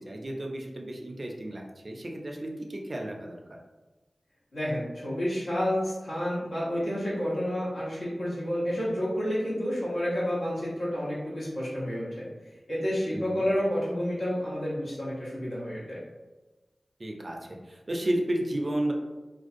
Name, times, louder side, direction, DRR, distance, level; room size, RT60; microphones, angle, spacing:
voice 1, 0.1-3.6 13.1-13.4 17.0-18.9, right 1 dB, 40° right, 1 dB, 0.4 m, -33 dB
voice 2, 4.5-12.2 12.7-16.0, equal, 85° left, -8 dB, 1.0 m, -30 dB
2.5 x 2.2 x 2.5 m, 1.2 s
wide cardioid pair, 90°, 0 cm